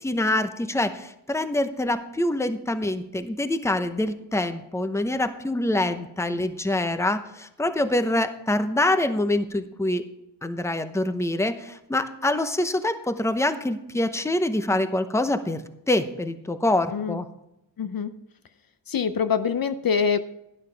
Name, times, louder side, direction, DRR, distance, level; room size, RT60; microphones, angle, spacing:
voice 1, 0.0-10.0 10.4-17.3, left 1 dB, 5° left, 10 dB, 0.8 m, -25 dB
voice 2, 17.8-18.1 18.9-20.2, left 6 dB, 55° left, 11 dB, 0.7 m, -24 dB
12.0 x 11.0 x 3.4 m, 0.85 s
cardioid pair, 85°, 43 cm